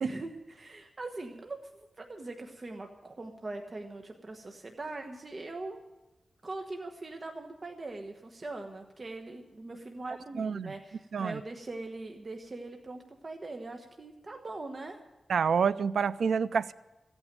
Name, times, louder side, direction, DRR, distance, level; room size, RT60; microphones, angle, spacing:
voice 1, 0.0-5.8 6.4-15.0, right 2 dB, 40° right, 4 dB, 1.2 m, -41 dB
voice 2, 10.4-10.7 11.1-11.4 15.3-16.7, right 6 dB, 90° right, 16 dB, 0.4 m, -28 dB
15.0 x 9.0 x 8.9 m, 1.0 s
wide cardioid pair, 80°, 0 cm